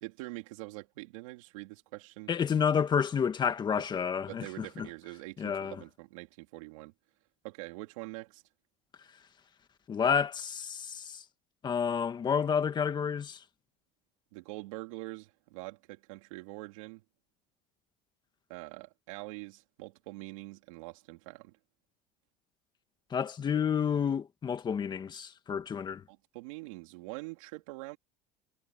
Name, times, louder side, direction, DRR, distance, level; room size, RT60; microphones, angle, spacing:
voice 1, 0.0-2.3 3.8-3.9 4.3-6.9 7.4-8.4 14.3-17.0 18.5-21.5 26.1-28.0, right 21 dB, 90° right, 3.2 m, -44 dB
voice 2, 2.3-4.9 5.4-5.8 9.9-11.2 11.6-13.4 23.1-26.0, left 7 dB, 25° left, 1.8 m, -30 dB
supercardioid pair, 135°, 17 cm